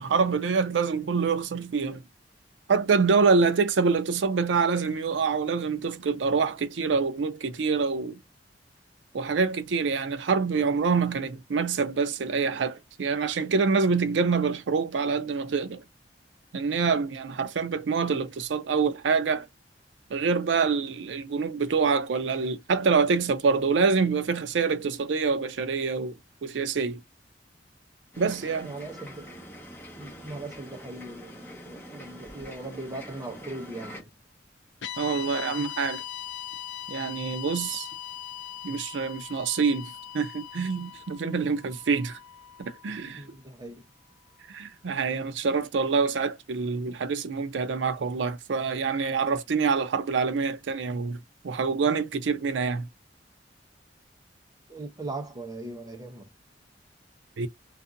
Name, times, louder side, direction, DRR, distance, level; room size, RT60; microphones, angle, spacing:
voice 1, 0.0-2.0 2.7-8.2 9.1-15.8 16.5-19.5 20.1-27.0 28.2-28.7 35.0-36.0 36.9-37.9 38.6-42.2 42.6-43.2 44.5-51.2 51.4-52.9 57.4-57.5, right 5 dB, 85° right, 0.5 m, -26 dB
sound 1, 28.1-34.0, equal, 10° left, 1.0 m, -44 dB
voice 2, 28.6-29.3 30.0-34.1 43.2-43.8 54.7-56.3, right 2 dB, 20° right, 0.7 m, -39 dB
sound 2, 34.8-43.1, left 11 dB, 75° left, 0.4 m, -40 dB
2.6 x 2.4 x 2.5 m
head